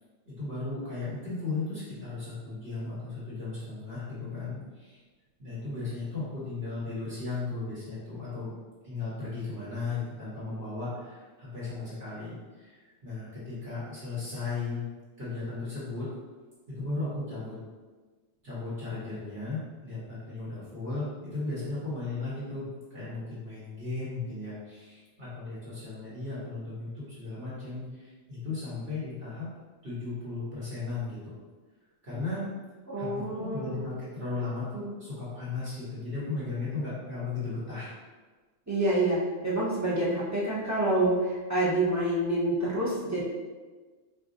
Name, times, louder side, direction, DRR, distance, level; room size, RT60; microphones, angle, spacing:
voice 1, 0.3-5.0 5.4-8.5 8.8-14.8 15.2-16.1 16.7-17.5 18.4-22.6 22.9-29.5 29.8-31.3 32.0-32.4 33.0-33.1 33.4-37.9, left 3 dB, 50° right, -10 dB, 1.3 m, -36 dB
voice 2, 32.9-33.8 38.7-43.2, right 1 dB, 25° right, -8 dB, 0.3 m, -27 dB
4.5 x 2.4 x 2.5 m, 1.4 s
omnidirectional pair, 1.4 m